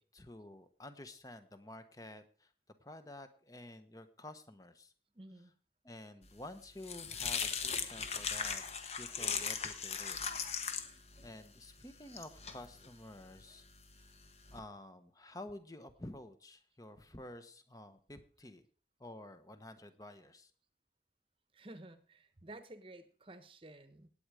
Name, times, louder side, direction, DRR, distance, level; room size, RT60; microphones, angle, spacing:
voice 1, 0.0-2.5 2.8-4.9 5.8-10.2 11.2-13.6 14.0-14.1 14.5-18.6 19.0-20.5, left 1 dB, 20° left, 10 dB, 1.1 m, -51 dB
voice 2, 5.1-5.5 21.5-24.1, right 2 dB, 30° right, 12 dB, 1.1 m, -52 dB
sound 1, 6.3-14.6, left 6 dB, 35° left, 1.2 m, -40 dB
17.5 x 9.0 x 5.0 m, 0.43 s
head